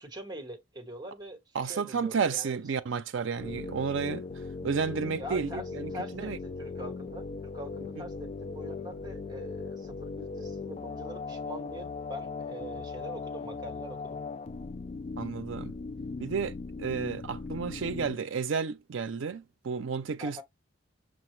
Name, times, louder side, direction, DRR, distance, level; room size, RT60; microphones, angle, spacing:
voice 1, 0.0-2.6 5.2-14.2 20.2-20.4, equal, 20° right, 1.1 m, -43 dB
voice 2, 1.5-4.3 4.6-6.4 8.0-8.1 15.2-15.7 16.2-20.4, right 5 dB, 80° right, 0.5 m, -32 dB
sound 1, 3.4-18.2, left 4 dB, 35° left, 0.3 m, -39 dB
6.4 x 2.2 x 3.1 m
head